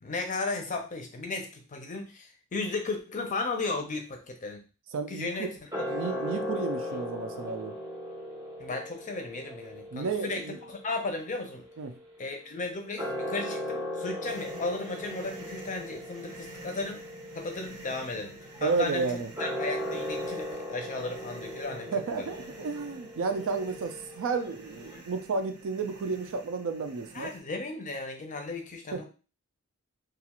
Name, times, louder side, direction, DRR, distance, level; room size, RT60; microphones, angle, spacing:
voice 1, 0.0-4.6 5.1-5.8 8.6-11.6 12.2-17.0 17.3-19.0 19.4-22.3 27.1-29.0, left 3 dB, 35° left, 4 dB, 0.5 m, -35 dB
voice 2, 4.9-5.5 5.9-7.8 9.9-10.6 11.8-12.0 18.6-19.3 21.7-27.3 28.9-29.0, right 4 dB, 60° right, 7 dB, 0.4 m, -32 dB
sound 1, 5.7-12.3 12.8-25.0, left 1 dB, 15° right, 0.6 m, -38 dB
sound 2, 14.2-27.4, right 2 dB, 80° right, 0.8 m, -49 dB
2.4 x 2.3 x 2.9 m, 0.33 s
head